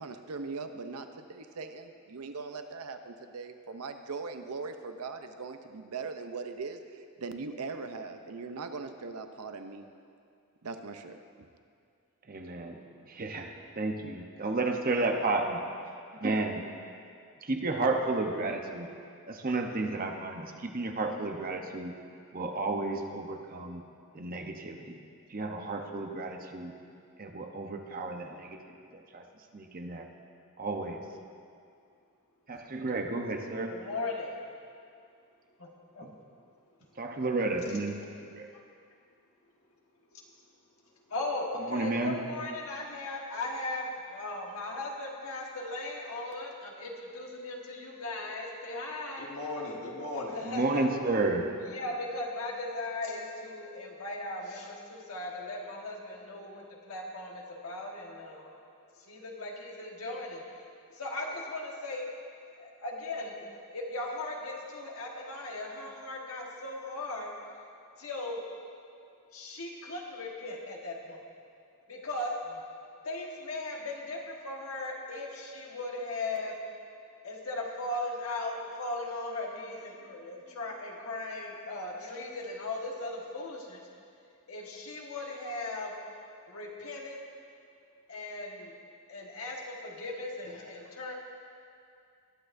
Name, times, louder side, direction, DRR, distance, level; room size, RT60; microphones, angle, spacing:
voice 1, 0.0-9.8 10.6-11.2, right 4 dB, 85° right, 7 dB, 0.7 m, -40 dB
voice 2, 12.3-12.8 13.1-15.7 16.2-16.6 17.4-18.9 19.3-21.9 22.3-23.8 24.1-25.0 25.3-26.7 27.2-28.8 29.1-29.2 29.5-30.1 30.6-31.0 32.5-33.7 36.0-36.1 37.0-38.1 41.7-42.2 50.4-51.5, right 2 dB, 40° right, 3 dB, 0.8 m, -32 dB
voice 3, 33.7-34.4 35.6-35.7 35.9-36.1 40.1-40.2 41.1-50.8 51.7-58.5 59.0-60.4 60.9-62.1 62.6-67.3 68.0-68.4 69.3-71.2 71.9-72.6 73.0-76.5 77.2-83.9 84.5-85.9 86.5-87.2 88.1-88.7 89.1-91.1, left 2 dB, 70° left, -1 dB, 1.5 m, -38 dB
20.5 x 8.7 x 2.6 m, 2.4 s
head